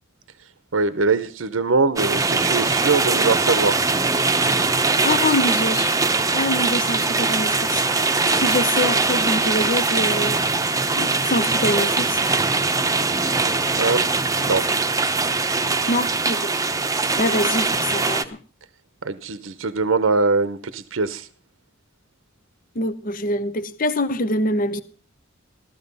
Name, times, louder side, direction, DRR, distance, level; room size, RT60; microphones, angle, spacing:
voice 1, 0.7-3.8 13.7-14.1 14.4-14.7 19.0-21.3, right 4 dB, 80° right, 0.8 m, -22 dB
sound 1, 2.0-18.2, right 3 dB, 15° right, 0.8 m, -21 dB
voice 2, 5.0-5.9 6.3-8.1 8.4-10.4 10.9-12.2 15.9-16.6 17.2-18.3 22.8-24.8, left 1 dB, 45° left, 0.7 m, -25 dB
15.0 x 13.5 x 5.4 m
head